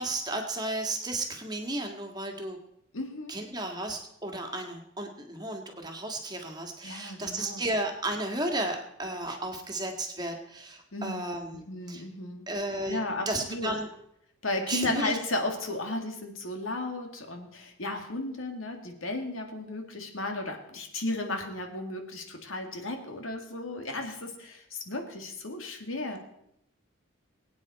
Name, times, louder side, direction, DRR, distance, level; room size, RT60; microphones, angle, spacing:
voice 1, 0.0-2.6 3.3-12.0 12.5-13.0 13.2-13.9 14.7-15.2, right 1 dB, 20° right, 3 dB, 1.7 m, -33 dB
voice 2, 2.9-3.3 6.8-7.7 10.9-11.4 11.7-12.5 12.9-13.7 14.4-26.2, left 2 dB, 80° left, 4 dB, 2.2 m, -34 dB
22.0 x 9.1 x 4.2 m, 0.77 s
head